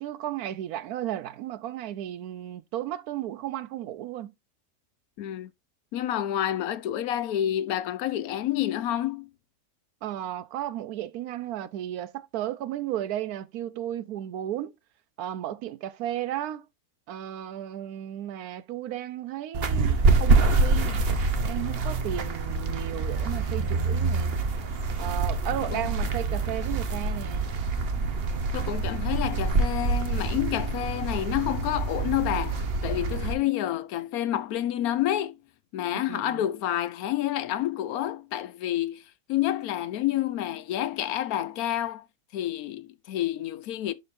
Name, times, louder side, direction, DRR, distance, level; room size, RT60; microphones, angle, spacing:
voice 1, 0.0-4.3 10.0-14.7 15.2-16.7 17.1-21.0 21.4-24.4 25.0-27.5 35.9-36.4, right 12 dB, 90° right, 1.1 m, -34 dB
voice 2, 5.2-5.5 5.9-9.3 25.7-25.9 28.5-35.4 35.7-39.0 39.3-42.0 42.3-43.9, left 12 dB, 80° left, 1.1 m, -29 dB
sound 1, 19.5-33.3, right 3 dB, 45° right, 1.0 m, -26 dB
11.0 x 4.0 x 2.5 m
omnidirectional pair, 1.5 m